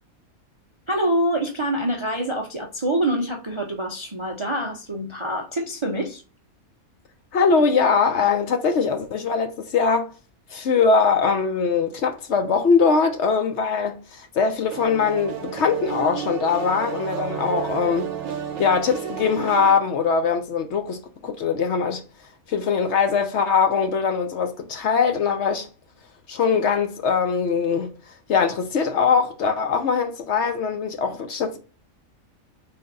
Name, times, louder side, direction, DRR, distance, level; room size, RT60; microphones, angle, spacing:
voice 1, 0.9-6.2, right 1 dB, 35° right, 0.4 m, -25 dB
voice 2, 7.3-10.1 10.5-18.1 18.6-22.0 22.5-25.7 26.3-31.6, left 5 dB, 60° left, 0.9 m, -22 dB
sound 1, 14.7-19.8, right 8 dB, 70° right, 1.1 m, -31 dB
3.9 x 3.4 x 4.0 m
omnidirectional pair, 1.5 m